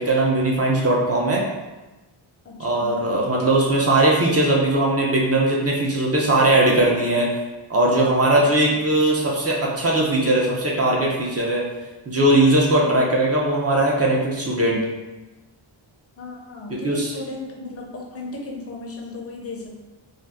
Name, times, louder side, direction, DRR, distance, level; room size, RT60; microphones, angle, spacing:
voice 1, 0.0-1.4 2.6-7.3 7.7-11.6 12.1-14.8 16.7-17.1, right 1 dB, 30° right, -3 dB, 0.5 m, -19 dB
voice 2, 2.4-2.9 8.4-8.8 12.8-13.1 16.2-19.8, left 3 dB, 30° left, -1 dB, 0.5 m, -36 dB
2.6 x 2.4 x 3.4 m, 1.1 s
wide cardioid pair, 150°, 50 cm